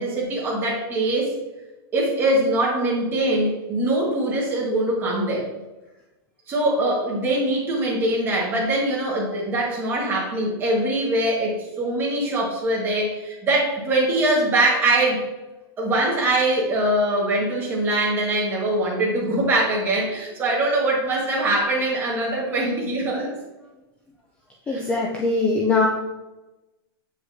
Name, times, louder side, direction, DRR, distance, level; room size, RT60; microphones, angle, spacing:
voice 1, 0.0-1.3 1.9-5.5 6.5-15.2 15.8-23.3 24.7-24.8, right 1 dB, 15° right, -3 dB, 1.5 m, -22 dB
voice 2, 24.7-25.9, left 3 dB, 10° left, -1 dB, 0.4 m, -21 dB
8.0 x 4.9 x 2.7 m, 1.0 s
supercardioid pair, 165°, 13 cm